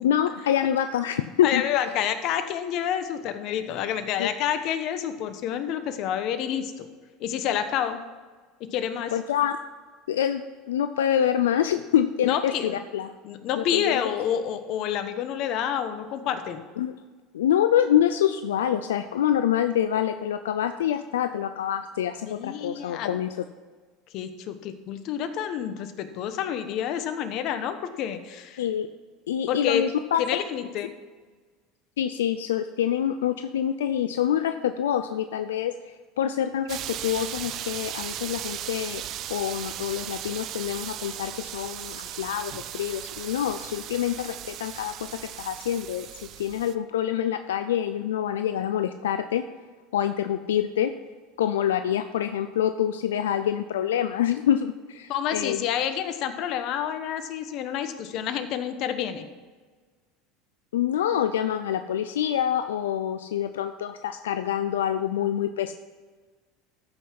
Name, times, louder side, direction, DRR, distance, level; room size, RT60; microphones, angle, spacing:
voice 1, 0.0-1.6 4.2-4.3 9.1-9.6 10.1-13.1 13.6-14.0 16.8-17.0 17.3-23.4 28.6-28.9 29.3-30.4 32.0-39.0 39.3-49.4 49.9-50.9 51.4-55.6 60.7-65.7, left 10 dB, 90° left, 9 dB, 0.4 m, -26 dB
voice 2, 1.4-6.9 7.2-8.0 8.6-9.1 12.2-12.8 13.2-16.6 22.3-23.1 24.1-28.6 29.5-29.8 30.2-30.9 55.1-59.2, left 9 dB, 60° left, 10 dB, 1.1 m, -28 dB
sound 1, 36.7-46.7, right 11 dB, 50° right, 0.6 m, -37 dB
13.5 x 5.8 x 5.9 m, 1.4 s
hypercardioid pair, 90°, 0 cm